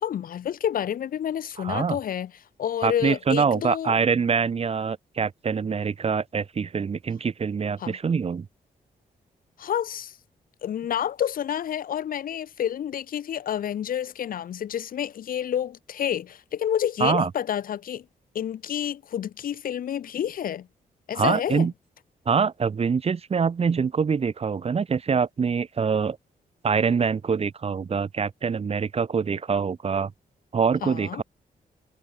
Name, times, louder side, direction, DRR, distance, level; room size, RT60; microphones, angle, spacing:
voice 1, 0.0-2.3 2.6-4.0 7.8-8.0 9.6-10.2 10.6-18.1 18.3-20.7 21.1-21.7 30.8-31.2, left 10 dB, 65° left, 0.7 m, -29 dB
voice 2, 1.6-2.0 2.8-8.5 17.0-17.3 21.1-21.7 22.3-26.2 26.6-30.1 30.5-31.2, right 6 dB, 40° right, 1.1 m, -24 dB
cardioid pair, 115°, 16 cm